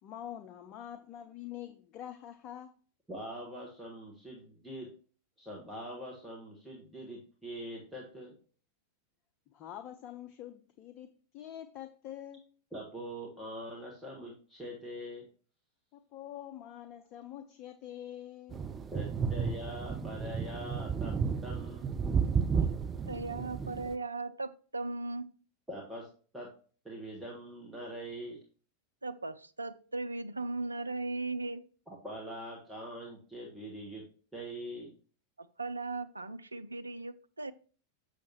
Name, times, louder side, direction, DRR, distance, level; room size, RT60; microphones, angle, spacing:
voice 1, 0.0-2.7 9.5-12.5 15.9-18.7 19.1-19.2, left 11 dB, 35° left, 0.5 m, -46 dB
voice 2, 3.1-4.9 5.4-8.3 12.7-15.3 18.9-21.2 21.4-21.9 25.7-26.1 26.3-26.5 26.8-28.4 31.9-34.0 34.3-34.9, equal, 5° right, 1.5 m, -43 dB
sound 1, 18.5-24.0, right 6 dB, 20° right, 0.5 m, -32 dB
voice 3, 22.7-25.3 29.0-31.6 35.4-37.5, right 3 dB, 80° right, 0.4 m, -38 dB
7.1 x 6.4 x 3.0 m
figure-of-eight pair, 90°, 0 cm